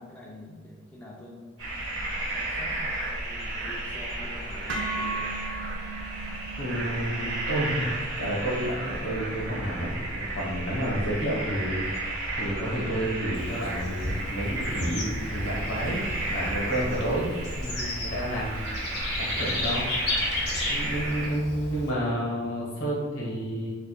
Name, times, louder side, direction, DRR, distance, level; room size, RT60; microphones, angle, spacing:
voice 1, 0.0-5.3 20.6-20.8, left 1 dB, 5° left, -4 dB, 0.4 m, -46 dB
sound 1, 1.6-21.3, right 2 dB, 85° right, 1.1 m, -33 dB
sound 2, 4.7-12.8, right 3 dB, 65° right, 0.5 m, -40 dB
voice 2, 6.6-12.1 12.4-18.6 19.2-19.9 20.7-23.8, right 1 dB, 85° left, -4 dB, 1.2 m, -30 dB
Bird / Insect, 13.3-21.9, left 1 dB, 55° left, 0.7 m, -33 dB
4.5 x 2.5 x 2.2 m, 1.5 s
head